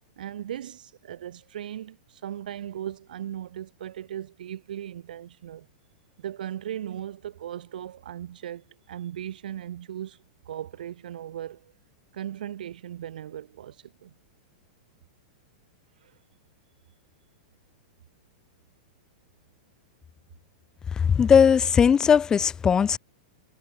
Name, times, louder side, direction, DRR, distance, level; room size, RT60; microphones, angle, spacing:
voice 1, 0.2-5.7 6.2-11.7 12.1-14.1 16.0-16.1, right 11 dB, 80° right, 7.9 m, -37 dB
voice 2, 20.9-23.0, left 7 dB, 15° left, 0.6 m, -19 dB
supercardioid pair, 155°, 5 cm